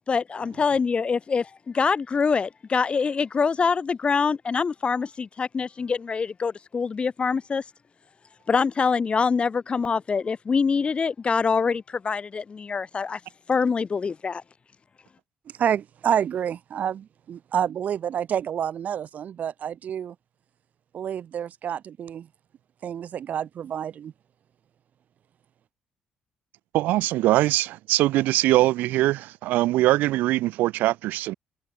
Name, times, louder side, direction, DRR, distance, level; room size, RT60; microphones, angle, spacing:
voice 1, 0.1-7.6 8.5-13.2 13.5-14.4, left 5 dB, 40° left, 2.5 m, -25 dB
voice 2, 15.6-20.1 20.9-22.3 22.8-24.1, right 9 dB, 60° right, 2.2 m, -28 dB
voice 3, 26.7-31.3, right 16 dB, 85° right, 0.8 m, -22 dB
supercardioid pair, 75°, 3 cm